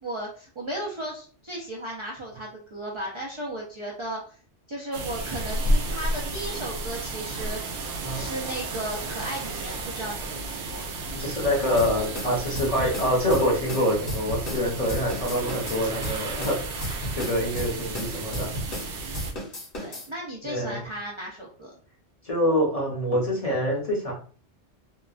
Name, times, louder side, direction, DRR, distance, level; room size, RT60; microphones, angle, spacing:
voice 1, 0.0-4.4 4.7-7.6 8.1-10.8 19.7-21.7, right 1 dB, 45° right, -3 dB, 0.4 m, -35 dB
sound 1, 4.9-19.3, right 2 dB, 75° right, 0.9 m, -32 dB
voice 2, 11.1-18.5 20.4-20.8 22.2-24.1, equal, 35° left, -3 dB, 0.8 m, -26 dB
sound 2, 11.8-14.6 14.9-18.9 19.1-20.1, equal, 55° left, 1.2 m, -33 dB
2.8 x 2.2 x 2.4 m, 0.42 s
omnidirectional pair, 1.2 m